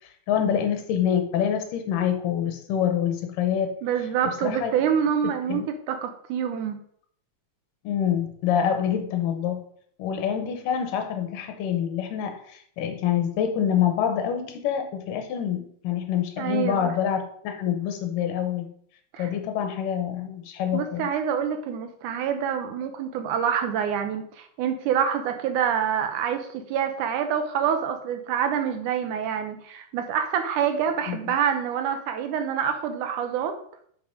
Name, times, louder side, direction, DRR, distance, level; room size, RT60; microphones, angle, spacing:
voice 1, 0.3-3.8 4.4-4.7 5.5-5.7 7.8-9.6 10.0-18.7 19.2-21.1 31.1-31.3, left 9 dB, 80° left, 6 dB, 2.5 m, -26 dB
voice 2, 3.8-6.8 16.4-16.9 19.1-19.3 20.7-33.6, right 8 dB, 75° right, 7 dB, 2.1 m, -26 dB
5.9 x 5.7 x 5.0 m, 0.63 s
omnidirectional pair, 3.9 m